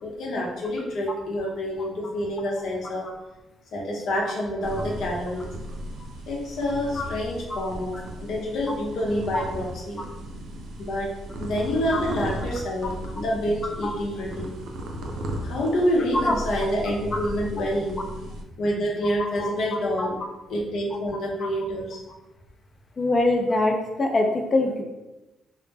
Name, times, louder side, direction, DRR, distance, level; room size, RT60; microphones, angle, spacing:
voice 1, 0.0-3.1 3.7-5.5 6.3-10.0 10.8-11.1 11.4-14.6 15.4-18.1 18.6-20.2 20.5-22.0, equal, 75° left, -2 dB, 0.7 m, -27 dB
sound 1, 4.6-18.4, equal, 75° right, 0.4 m, -36 dB
voice 2, 23.0-24.8, left 2 dB, 35° left, 3 dB, 0.4 m, -23 dB
2.1 x 2.0 x 3.3 m, 1.0 s
cardioid pair, 90°, 0 cm